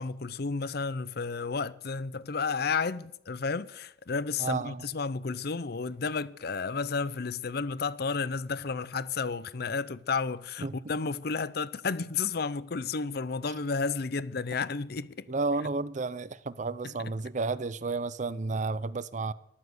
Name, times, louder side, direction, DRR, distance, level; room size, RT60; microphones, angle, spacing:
voice 1, 0.0-15.3 16.8-16.9, left 4 dB, 55° left, 0.6 m, -32 dB
voice 2, 4.4-4.9 10.6-10.8 15.3-19.3, right 3 dB, 40° right, 0.6 m, -32 dB
14.0 x 11.5 x 8.0 m
head